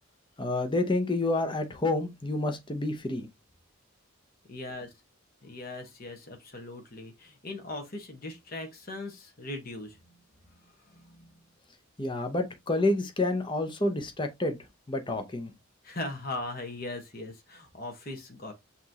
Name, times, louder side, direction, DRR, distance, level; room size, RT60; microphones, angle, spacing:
voice 1, 0.4-3.3 12.0-14.6 14.9-15.5, left 2 dB, 20° left, 0.7 m, -29 dB
voice 2, 4.5-4.9 5.4-10.2 10.9-11.3 15.8-18.5, left 2 dB, 45° left, 1.3 m, -39 dB
5.8 x 3.0 x 2.8 m
head